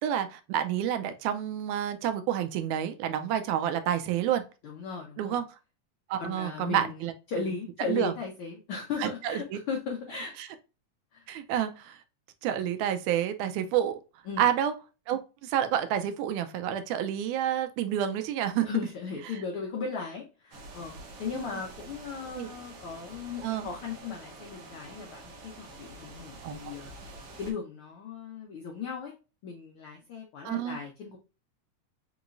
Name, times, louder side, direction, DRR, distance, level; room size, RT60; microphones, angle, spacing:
voice 1, 0.0-4.4 5.2-5.4 6.1-7.1 7.9-8.1 9.0-9.6 10.4-10.5 11.3-12.0 12.4-14.0 14.4-14.7 15.1-18.7 21.3-21.5 22.3-22.5 23.4-23.7 26.4-26.6 30.5-30.8, right 10 dB, 85° right, 2.0 m, -29 dB
voice 2, 4.6-5.4 6.2-7.0 7.3-10.3 11.1-11.3 14.3-14.5 18.6-26.9 27.4-29.1 29.4-31.2, left 5 dB, 80° left, 1.2 m, -37 dB
sound 1, 20.5-27.5, right 2 dB, 60° right, 1.9 m, -47 dB
5.2 x 3.0 x 2.4 m
omnidirectional pair, 3.4 m